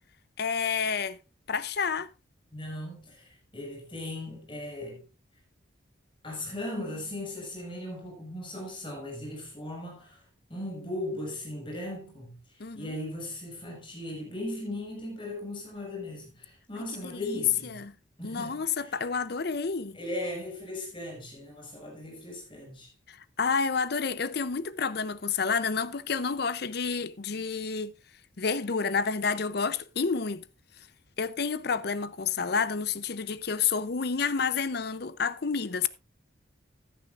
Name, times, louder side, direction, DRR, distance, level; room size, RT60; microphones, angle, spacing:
voice 1, 0.4-1.2 1.5-2.1 12.6-13.0 17.0-17.9 18.2-20.0 23.1-27.9 28.4-30.4 31.2-35.9, left 5 dB, 55° left, 0.6 m, -29 dB
voice 2, 2.5-5.0 6.2-10.2 10.5-17.8 18.2-19.0 19.9-22.9, left 1 dB, 25° left, 5.6 m, -38 dB
15.0 x 10.5 x 2.5 m
head